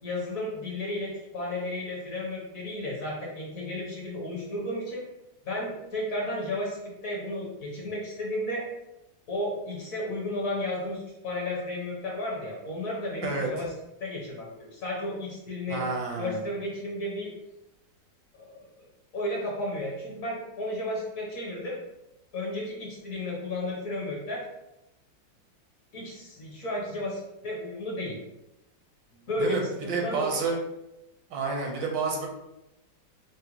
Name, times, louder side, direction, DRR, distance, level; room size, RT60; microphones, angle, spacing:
voice 1, 0.0-5.0 5.4-6.8 7.0-8.6 9.3-13.7 14.0-15.8 16.1-17.3 18.3-18.9 19.1-21.8 22.3-24.4 25.9-28.2 29.3-30.4, left 1 dB, 60° left, -3 dB, 1.0 m, -33 dB
voice 2, 15.7-16.4 29.4-29.6 29.9-30.6 31.3-32.3, right 4 dB, 75° right, 0 dB, 1.4 m, -29 dB
4.9 x 2.1 x 2.8 m, 0.90 s
omnidirectional pair, 2.0 m